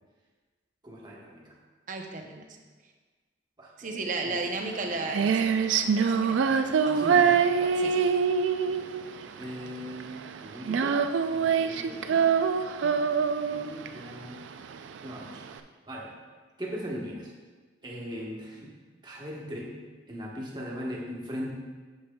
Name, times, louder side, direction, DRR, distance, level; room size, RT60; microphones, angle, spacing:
voice 1, 0.8-1.6 3.6-4.3 6.8-8.0 8.6-8.9 9.4-12.3 12.8-13.0 13.5-14.4 15.0-15.4 15.9-16.1 16.6-17.3 17.8-18.7 19.0-19.7 20.1-21.5, equal, 25° right, -3 dB, 1.1 m, -39 dB
voice 2, 1.9-2.6 2.8-2.9 3.8-5.5 5.8-6.8 7.6-8.0, right 3 dB, 45° right, 3 dB, 0.7 m, -35 dB
Female singing, 4.6-15.6, right 6 dB, 85° right, 0.4 m, -25 dB
8.5 x 7.1 x 2.3 m, 1.4 s
head